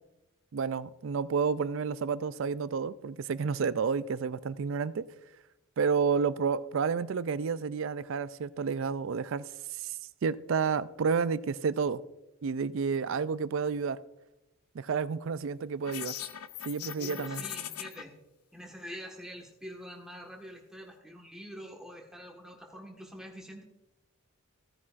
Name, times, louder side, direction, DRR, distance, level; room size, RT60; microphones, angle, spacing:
voice 1, 0.5-5.1 5.8-9.4 9.8-9.9 10.2-12.0 12.4-14.0 14.7-16.1 16.7-17.4, right 5 dB, 60° right, 16 dB, 0.4 m, -30 dB
sound 1, 15.8-18.0, left 10 dB, 85° left, 0.6 m, -40 dB
voice 2, 17.0-18.1 18.5-23.6, equal, 5° right, 0 dB, 1.4 m, -45 dB
15.0 x 9.5 x 2.5 m, 0.94 s
head